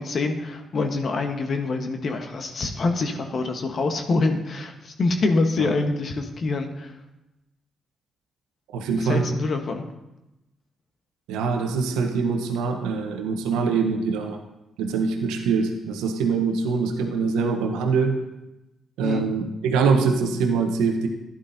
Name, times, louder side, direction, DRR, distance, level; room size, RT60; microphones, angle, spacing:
voice 1, 0.0-6.9 9.0-9.8 19.0-19.2, left 3 dB, 55° left, 5 dB, 1.1 m, -25 dB
voice 2, 8.7-9.3 11.3-14.4 14.8-18.1 19.0-21.1, right 5 dB, 85° right, 4 dB, 0.9 m, -23 dB
11.5 x 10.5 x 2.7 m, 0.96 s
supercardioid pair, 50°, 0 cm